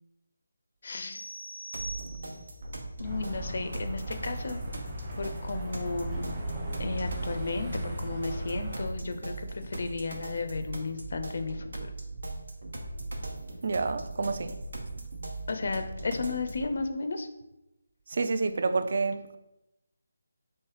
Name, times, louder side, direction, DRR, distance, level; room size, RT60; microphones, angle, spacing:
voice 1, 0.8-1.2 3.0-4.6 5.2-6.3 6.8-11.9 15.5-17.3, left 3 dB, 55° left, 0.4 m, -34 dB
sound 1, 1.1-2.6, right 1 dB, 90° left, 0.6 m, -42 dB
sound 2, 1.7-16.7, right 2 dB, 75° right, 0.9 m, -40 dB
sound 3, 3.0-8.9, right 1 dB, 15° right, 0.7 m, -37 dB
voice 2, 13.6-14.6 14.9-15.1 18.1-19.4, right 4 dB, 50° right, 0.3 m, -29 dB
3.2 x 3.1 x 4.7 m
figure-of-eight pair, 170°, 0 cm